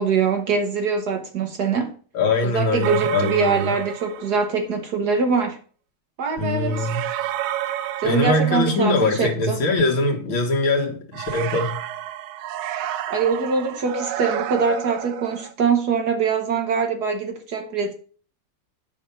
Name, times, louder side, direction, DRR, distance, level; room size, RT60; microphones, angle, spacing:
voice 1, 0.0-1.9 2.4-5.6 6.2-6.9 8.0-9.6 13.1-17.9, right 5 dB, 55° right, 1.4 m, -23 dB
voice 2, 2.1-3.7 6.4-7.1 8.0-11.8, left 2 dB, 70° left, 2.4 m, -22 dB
sound 1, 2.8-4.6 6.7-9.2 11.1-15.5, right 12 dB, 80° right, 1.5 m, -30 dB
8.0 x 5.7 x 5.3 m
omnidirectional pair, 2.3 m